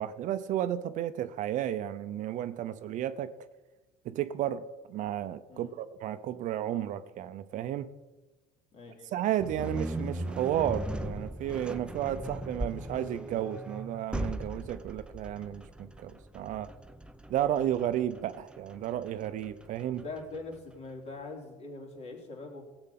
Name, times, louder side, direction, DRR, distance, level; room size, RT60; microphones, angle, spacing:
voice 1, 0.0-3.4 4.0-7.9 9.1-16.7 17.3-20.0, right 11 dB, 55° right, 12 dB, 0.7 m, -33 dB
voice 2, 8.7-9.2 20.0-22.7, left 3 dB, 45° left, 1 dB, 3.5 m, -42 dB
sound 1, 9.4-20.5, right 1 dB, 5° right, 0.7 m, -38 dB
15.5 x 7.9 x 5.9 m, 1.1 s
supercardioid pair, 95°, 15 cm